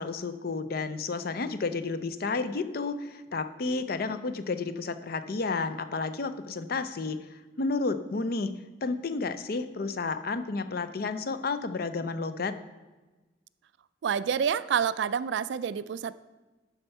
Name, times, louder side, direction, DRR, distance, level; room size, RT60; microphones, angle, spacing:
voice 1, 0.0-7.2 7.6-12.5, left 3 dB, 50° left, 11 dB, 0.5 m, -31 dB
voice 2, 14.0-16.1, right 7 dB, 65° right, 16 dB, 0.3 m, -28 dB
11.5 x 4.5 x 5.4 m, 1.2 s
head